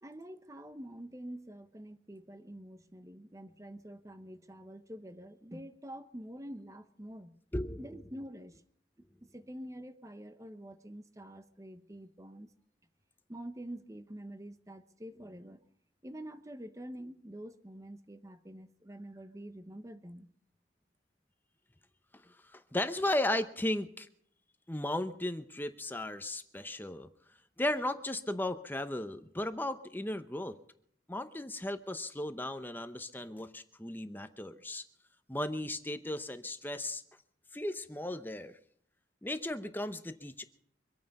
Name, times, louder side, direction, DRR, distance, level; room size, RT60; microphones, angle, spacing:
voice 1, 0.0-7.4 7.8-8.6 9.2-12.5 13.3-15.6 16.0-20.3, right 1 dB, 15° right, 10 dB, 1.0 m, -47 dB
voice 2, 7.5-7.9 22.5-24.1 24.7-27.1 27.6-30.6 31.1-34.8 35.3-37.0 37.5-38.6 39.2-40.4, left 1 dB, 10° left, 9 dB, 0.8 m, -35 dB
24.5 x 9.3 x 5.4 m, 0.64 s
head